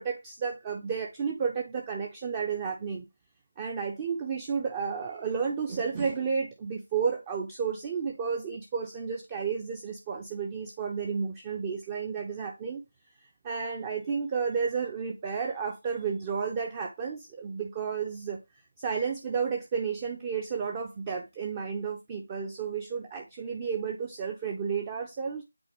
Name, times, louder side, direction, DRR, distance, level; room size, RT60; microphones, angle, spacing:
voice 1, 0.0-3.0 3.6-12.8 13.4-18.4 18.8-25.4, right 6 dB, 15° right, 0.5 m, -32 dB
8.6 x 4.1 x 2.9 m
figure-of-eight pair, 165°, 0 cm